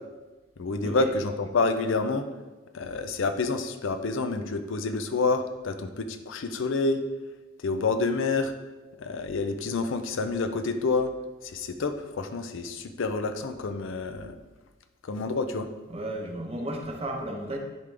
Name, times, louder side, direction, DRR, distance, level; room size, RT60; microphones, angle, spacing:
voice 1, 0.6-2.2 2.7-7.0 7.6-8.5 9.0-11.1 11.4-14.4 15.0-15.7, left 3 dB, 65° left, 8 dB, 0.5 m, -28 dB
voice 2, 15.9-17.6, right 1 dB, 30° right, 1 dB, 0.9 m, -33 dB
10.5 x 3.7 x 3.3 m, 1.2 s
head